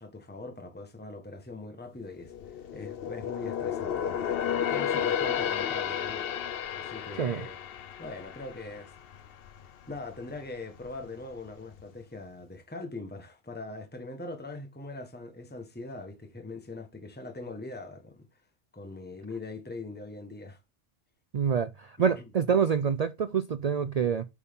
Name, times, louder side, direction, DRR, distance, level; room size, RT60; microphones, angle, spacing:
voice 1, 0.0-2.3 2.7-6.3 6.7-7.6 8.0-8.9 9.9-18.3 18.7-20.6 22.1-22.3, left 2 dB, 10° left, 1.2 m, -41 dB
sound 1, 2.1-9.6 10.0-10.2 10.8-11.5 11.8-11.9, left 9 dB, 60° left, 0.8 m, -32 dB
voice 2, 21.3-24.2, right 7 dB, 60° right, 0.4 m, -26 dB
8.3 x 5.7 x 3.5 m
omnidirectional pair, 1.2 m